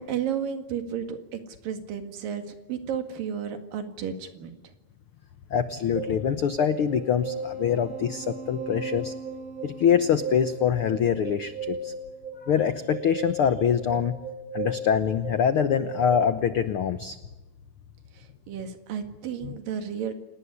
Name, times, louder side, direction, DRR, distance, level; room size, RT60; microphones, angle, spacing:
voice 1, 0.0-4.7 18.1-20.1, right 8 dB, 85° right, 8 dB, 3.7 m, -33 dB
voice 2, 5.5-9.1 9.6-11.9 12.4-14.1 14.5-17.2 19.4-19.5, left 8 dB, 85° left, 11 dB, 1.2 m, -24 dB
sound 1, 6.0-16.1, right 3 dB, 65° right, 7.1 m, -36 dB
29.0 x 18.5 x 9.8 m, 1.1 s
omnidirectional pair, 3.9 m